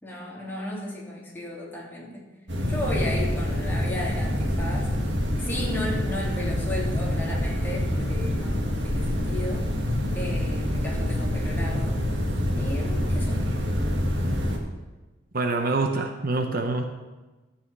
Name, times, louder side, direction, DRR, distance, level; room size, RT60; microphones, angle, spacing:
voice 1, 0.0-2.3 2.7-4.9 5.3-9.7 10.1-12.0 12.6-13.5, left 1 dB, 10° left, -5 dB, 3.1 m, -34 dB
sound 1, 2.5-14.6, left 1 dB, 70° right, 2.1 m, -26 dB
voice 2, 15.3-16.9, right 3 dB, 50° right, 5 dB, 0.9 m, -25 dB
13.0 x 5.8 x 8.0 m, 1.2 s
head